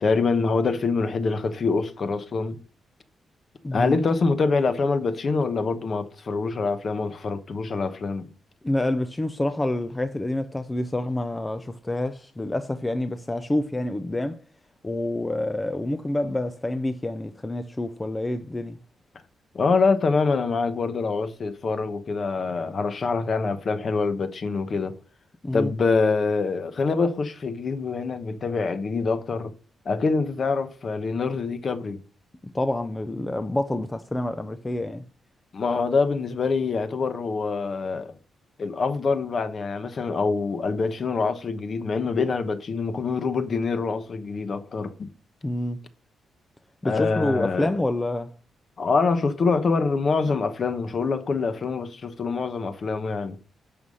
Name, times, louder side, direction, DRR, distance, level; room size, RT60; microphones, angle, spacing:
voice 1, 0.0-2.6 3.7-8.3 19.5-24.9 25.5-29.5 29.8-32.0 35.5-38.1 38.6-45.1 46.8-47.7 48.8-53.4, left 4 dB, 35° left, 1.0 m, -25 dB
voice 2, 3.6-4.0 8.6-14.4 14.8-18.8 25.4-25.7 32.4-35.0 45.4-45.8 46.8-48.3, left 1 dB, 10° left, 0.5 m, -27 dB
11.5 x 5.5 x 6.4 m
wide cardioid pair, 180°, 0 cm